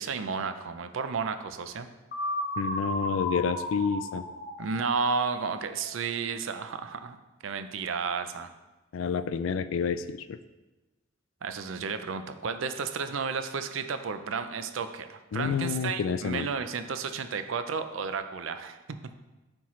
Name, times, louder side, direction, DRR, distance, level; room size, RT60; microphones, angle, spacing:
voice 1, 0.0-1.9 4.6-7.2 7.4-8.5 11.4-18.8, right 5 dB, 85° right, 10 dB, 0.5 m, -32 dB
sound 1, 2.1-6.0, left 1 dB, 50° left, 0.9 m, -34 dB
voice 2, 2.6-4.2 8.9-10.4 15.3-16.5, left 6 dB, 85° left, 14 dB, 0.4 m, -29 dB
9.6 x 4.4 x 3.1 m, 1.1 s
head